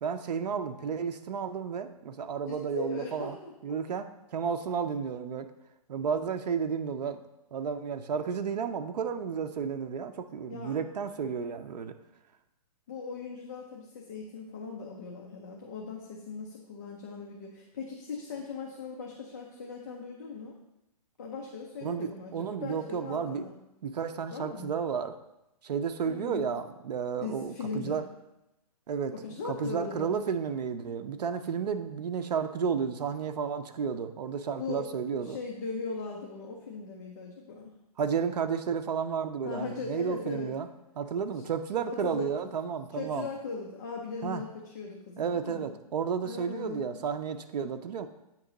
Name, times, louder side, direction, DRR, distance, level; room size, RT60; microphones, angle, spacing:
voice 1, 0.0-3.4 3.6-5.5 5.9-7.2 7.5-11.9 21.8-23.5 23.8-25.2 25.6-28.0 28.9-29.1 29.4-35.4 38.0-40.7 41.0-43.3 44.2-44.4 45.2-48.1, right 6 dB, 90° right, 7 dB, 0.5 m, -32 dB
voice 2, 2.5-3.5 10.5-10.8 12.9-20.5 21.2-23.6 24.3-24.7 26.0-26.5 27.2-28.0 29.1-30.2 34.6-34.9 35.1-37.7 39.4-40.5 41.4-41.5 41.8-42.5 42.9-45.7 46.2-46.9, left 4 dB, 25° left, -1 dB, 0.5 m, -39 dB
8.9 x 3.0 x 3.8 m, 0.90 s
hypercardioid pair, 170°, 20 cm